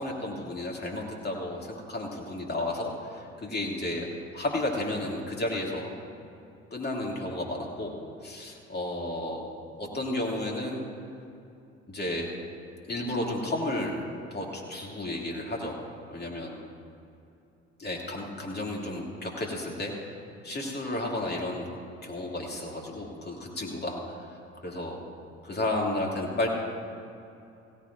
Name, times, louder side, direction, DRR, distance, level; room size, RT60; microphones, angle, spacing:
voice 1, 0.0-4.1 4.3-5.9 6.7-8.0 8.2-9.4 9.8-10.8 11.9-12.3 12.9-14.0 14.3-15.8 16.1-16.6 17.8-20.2 20.4-21.7 22.0-24.3 24.6-25.0 25.4-26.5, left 1 dB, 25° left, -1 dB, 2.7 m, -32 dB
16.5 x 14.5 x 2.6 m, 2.7 s
figure-of-eight pair, 55°, 36 cm